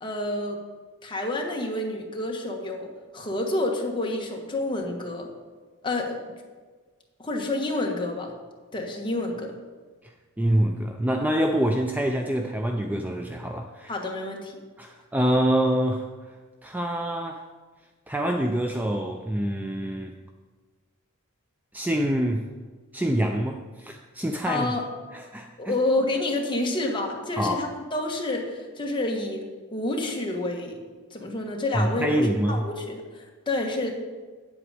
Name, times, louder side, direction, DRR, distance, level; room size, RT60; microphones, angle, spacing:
voice 1, 0.0-0.6 1.0-2.9 3.1-5.3 5.8-6.2 7.2-8.3 8.7-9.5 13.9-14.5 24.5-24.8 25.6-29.4 29.7-30.8 31.1-33.0 33.5-33.9, left 2 dB, 25° left, 0 dB, 1.4 m, -28 dB
voice 2, 10.4-13.9 14.8-16.1 16.6-17.4 18.1-20.1 21.7-22.4 22.9-24.7 25.1-25.8 27.4-27.6 31.7-32.6, right 1 dB, 10° right, 3 dB, 0.4 m, -26 dB
8.7 x 7.9 x 5.0 m, 1.4 s
head